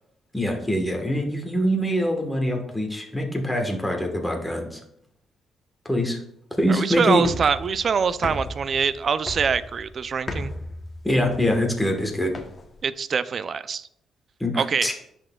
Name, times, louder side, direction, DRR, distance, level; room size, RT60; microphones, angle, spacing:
voice 1, 0.3-4.8 5.8-6.2 6.6-7.2 11.0-12.3 14.4-14.9, equal, 5° left, 2 dB, 1.2 m, -24 dB
voice 2, 6.7-10.5 12.8-13.9 14.6-14.9, right 6 dB, 45° right, 15 dB, 0.3 m, -24 dB
sound 1, 7.2-12.8, left 1 dB, 35° left, 0.9 m, -36 dB
10.5 x 4.3 x 2.2 m, 0.73 s
cardioid pair, 90°, 0 cm